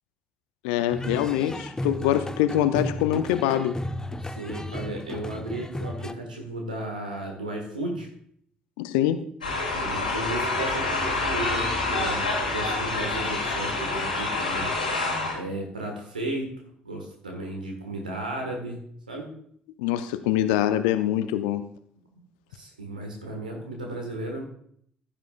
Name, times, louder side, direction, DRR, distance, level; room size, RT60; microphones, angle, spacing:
voice 1, 0.6-3.8 8.8-9.2 19.8-21.7, left 12 dB, 70° left, 11 dB, 0.5 m, -24 dB
sound 1, 0.9-6.1, left 1 dB, 15° left, 0.7 m, -34 dB
voice 2, 4.2-8.1 9.7-14.7 15.3-16.5 16.8-18.8 19.1-19.3 22.5-24.4, right 1 dB, 90° right, 1 dB, 1.5 m, -34 dB
sound 2, 9.4-15.3, left 2 dB, 90° left, 1.7 m, -27 dB
15.0 x 8.8 x 2.4 m, 0.64 s
figure-of-eight pair, 45°, 4 cm